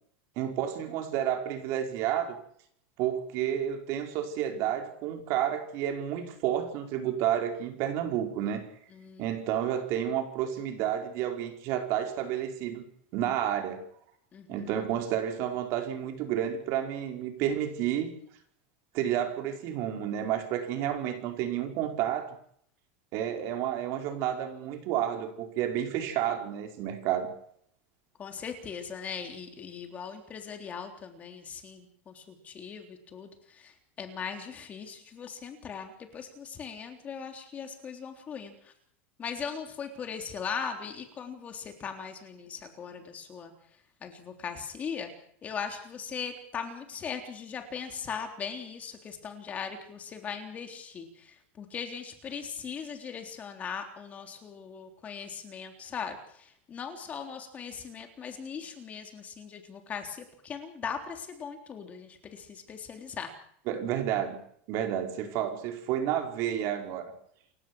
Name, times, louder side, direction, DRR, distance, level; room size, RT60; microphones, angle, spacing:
voice 1, 0.3-2.4 3.0-8.6 9.2-12.8 13.1-13.8 14.5-18.1 18.9-22.3 23.1-27.3 63.7-64.4 64.7-67.1, right 10 dB, 45° right, 4 dB, 5.2 m, -30 dB
voice 2, 8.9-9.3 14.3-14.8 28.2-38.7 39.2-43.5 44.0-45.1 45.4-63.3, left 6 dB, 25° left, 5 dB, 3.6 m, -39 dB
29.0 x 16.0 x 6.4 m, 0.65 s
supercardioid pair, 155°, 6 cm